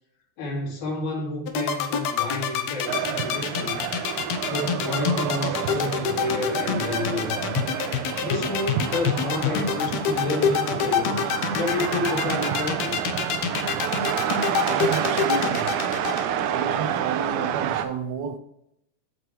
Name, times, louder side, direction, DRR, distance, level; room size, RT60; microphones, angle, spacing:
voice 1, 0.4-3.8 4.5-7.5 8.2-11.2 11.5-13.0, left 2 dB, 85° left, 3.9 m, -30 dB
sound 1, 1.5-16.2, left 8 dB, 70° left, 1.9 m, -26 dB
sound 2, 2.9-17.8, right 9 dB, 90° right, 2.1 m, -29 dB
voice 2, 14.7-15.7 16.5-18.4, right 6 dB, 75° right, 1.8 m, -31 dB
13.5 x 4.6 x 3.2 m
omnidirectional pair, 3.5 m